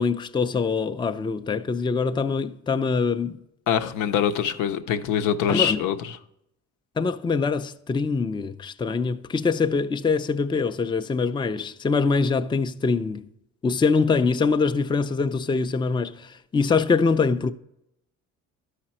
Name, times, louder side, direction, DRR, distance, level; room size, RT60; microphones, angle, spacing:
voice 1, 0.0-3.4 5.5-5.8 7.0-13.2 13.6-17.5, left 4 dB, 15° left, 0.4 m, -24 dB
voice 2, 3.7-6.1, left 8 dB, 85° left, 0.7 m, -24 dB
12.0 x 5.0 x 4.3 m
cardioid pair, 90°, 30 cm